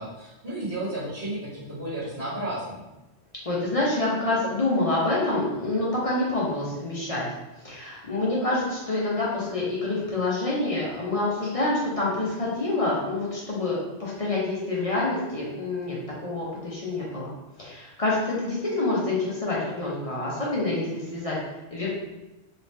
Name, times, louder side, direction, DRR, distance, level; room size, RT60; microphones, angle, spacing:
voice 1, 0.0-2.8, right 1 dB, 30° right, -12 dB, 1.5 m, -33 dB
voice 2, 3.5-7.2 7.6-17.3 17.6-21.4 21.7-21.9, left 2 dB, 35° left, -6 dB, 0.7 m, -27 dB
3.2 x 2.8 x 3.2 m, 1.0 s
omnidirectional pair, 1.2 m